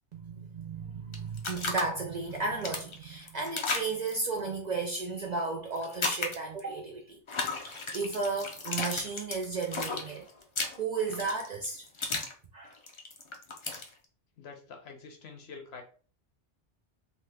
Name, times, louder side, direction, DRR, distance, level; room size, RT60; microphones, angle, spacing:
voice 1, 0.1-7.2 7.6-10.3 10.8-11.8 12.5-12.7, right 4 dB, 55° right, 0.5 m, -34 dB
sound 1, 1.1-1.8 2.3-4.2 5.8-6.6 7.3-12.3 12.6-13.9, left 3 dB, 50° left, 0.3 m, -34 dB
voice 2, 14.4-15.8, left 5 dB, 65° left, 0.9 m, -46 dB
2.8 x 2.4 x 3.3 m
omnidirectional pair, 1.2 m